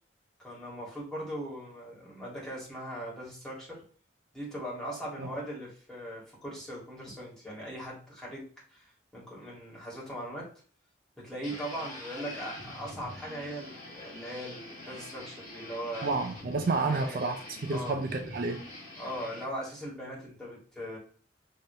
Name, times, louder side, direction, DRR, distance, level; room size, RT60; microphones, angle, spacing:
voice 1, 0.4-3.8 4.3-8.9 9.1-10.5 11.2-16.1 16.8-17.2 17.7-18.0 19.0-21.0, equal, 5° left, 1.8 m, -39 dB
sound 1, 11.4-19.4, left 1 dB, 45° left, 1.6 m, -44 dB
voice 2, 16.0-18.7, right 3 dB, 55° right, 0.5 m, -30 dB
4.9 x 3.0 x 2.7 m
head